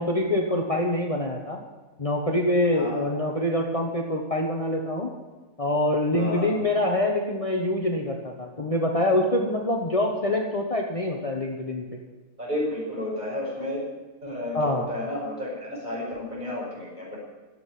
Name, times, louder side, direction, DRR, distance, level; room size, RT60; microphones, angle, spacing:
voice 1, 0.0-1.6 2.0-5.1 5.6-12.0 14.5-14.9, left 1 dB, 25° left, 1 dB, 1.3 m, -25 dB
voice 2, 6.1-6.5 12.4-13.8 14.2-17.2, left 1 dB, 35° right, -4 dB, 5.3 m, -32 dB
14.0 x 8.0 x 9.3 m, 1.3 s
omnidirectional pair, 1.4 m